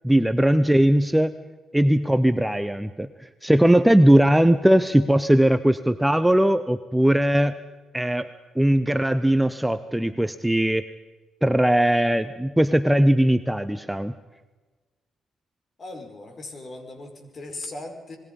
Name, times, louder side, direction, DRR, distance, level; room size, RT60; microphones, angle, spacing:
voice 1, 0.0-1.3 1.7-3.1 3.4-7.6 7.9-8.3 8.6-10.8 11.4-14.1, right 1 dB, 5° right, 11 dB, 0.8 m, -19 dB
voice 2, 15.8-18.2, left 2 dB, 40° left, 5 dB, 5.2 m, -38 dB
27.0 x 21.0 x 5.5 m, 1.3 s
cardioid pair, 90°, 0 cm